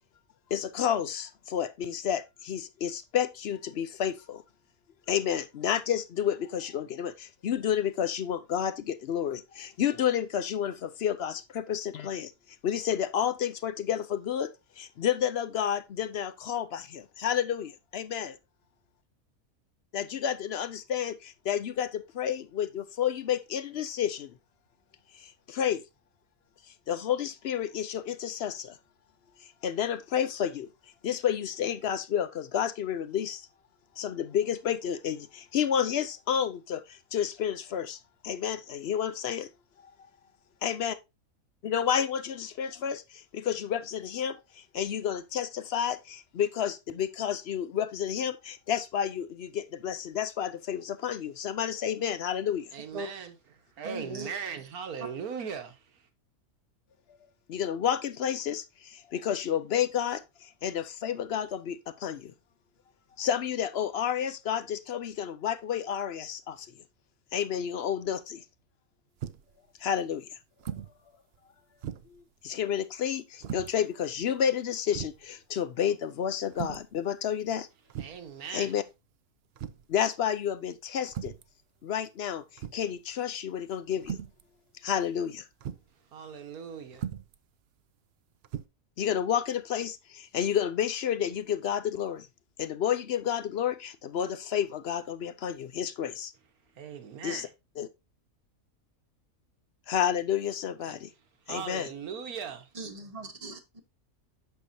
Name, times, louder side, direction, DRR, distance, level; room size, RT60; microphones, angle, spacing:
voice 1, 0.5-4.4 5.1-12.3 12.6-18.4 19.9-24.3 25.1-25.8 26.9-28.8 29.6-30.7 31.0-33.5 34.0-38.0 38.2-39.5 40.6-41.0 41.6-52.7 57.5-62.3 63.2-66.7 67.3-68.4 69.8-70.4 72.1-77.7 78.5-78.8 79.9-81.3 81.8-84.2 84.8-85.5 89.0-92.3 92.6-96.3 97.2-97.5 97.8-97.9 99.9-101.1 101.5-101.9, left 9 dB, 60° left, 0.7 m, -30 dB
voice 2, 52.7-53.3 53.8-55.8 78.0-78.7 86.1-87.0 96.8-97.5 100.8-101.0 101.5-102.7, right 7 dB, 85° right, 1.6 m, -39 dB
voice 3, 53.8-54.3 55.0-55.1 102.7-103.8, right 3 dB, 30° right, 1.1 m, -39 dB
sound 1, 69.2-69.6 70.6-71.0 71.3-71.4 71.8-72.2 73.4-73.7 74.5-74.6 74.9-75.2 76.5-76.9 77.9-78.3 79.6-79.9 81.1-81.5 82.6-82.9 84.0-84.4 85.6-85.9 86.9-87.4 88.4-88.6, right 9 dB, 65° right, 0.6 m, -38 dB
8.3 x 6.6 x 2.7 m
omnidirectional pair, 1.5 m